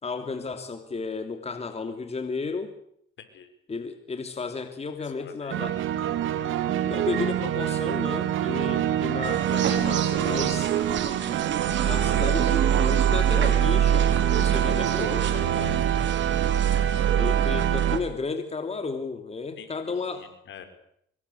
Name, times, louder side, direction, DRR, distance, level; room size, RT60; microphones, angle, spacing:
voice 1, 0.0-2.7 3.7-5.8 6.8-10.7 11.8-15.8 17.1-20.3, left 4 dB, 30° left, 7 dB, 2.9 m, -33 dB
voice 2, 3.2-3.5 5.0-5.6 8.6-9.1 19.6-20.6, left 8 dB, 70° left, 8 dB, 5.5 m, -47 dB
sound 1, 5.5-18.0, right 10 dB, 85° right, 2.6 m, -24 dB
sound 2, 9.2-18.0, right 8 dB, 70° right, 4.6 m, -32 dB
25.0 x 23.0 x 8.4 m, 0.70 s
cardioid pair, 90°, 20 cm